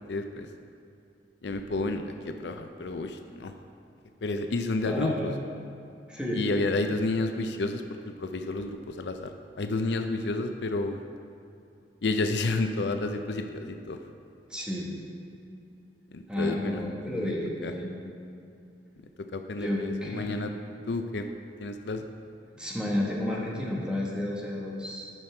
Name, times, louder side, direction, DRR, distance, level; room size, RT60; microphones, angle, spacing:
voice 1, 0.1-0.5 1.4-3.5 4.2-5.3 6.3-7.8 8.2-9.3 9.6-11.0 12.0-14.0 16.1-16.8 17.1-17.3 17.6-17.7 19.3-20.5 20.9-21.3 21.6-22.1, left 2 dB, 75° left, 6 dB, 0.5 m, -30 dB
voice 2, 4.9-5.4 6.1-6.4 14.5-14.9 16.3-17.9 19.6-20.4 22.5-25.0, left 1 dB, 5° right, -4 dB, 1.4 m, -31 dB
11.0 x 5.8 x 4.4 m, 2.6 s
head